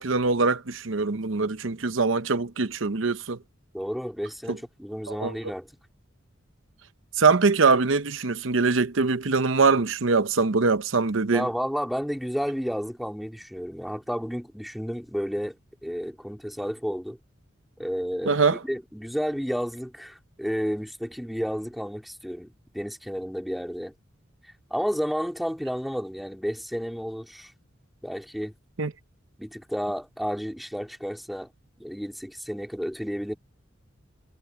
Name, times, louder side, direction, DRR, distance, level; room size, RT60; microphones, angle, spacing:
voice 1, 0.0-3.4 4.5-4.6 5.1-5.4 7.2-11.5 18.3-18.6 28.8-28.9, right 4 dB, 75° right, 0.9 m, -23 dB
voice 2, 3.7-5.7 11.3-15.6 15.8-17.2 17.8-23.9 24.7-27.5 28.0-28.5 29.4-31.5 31.8-33.3, equal, ahead, 3.6 m, -31 dB
head